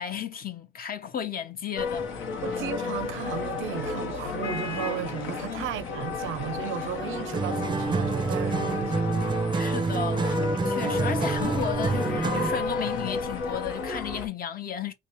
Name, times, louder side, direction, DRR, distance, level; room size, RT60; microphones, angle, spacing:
voice 1, 0.0-2.1 5.5-5.7 9.5-14.9, left 8 dB, 50° left, 0.8 m, -34 dB
sound 1, 1.8-14.3, left 4 dB, 80° left, 1.0 m, -32 dB
voice 2, 2.4-9.2, right 10 dB, 85° right, 0.5 m, -35 dB
sound 2, 7.3-12.7, right 4 dB, 25° right, 0.4 m, -27 dB
3.6 x 2.7 x 3.0 m
cardioid pair, 90°, 20 cm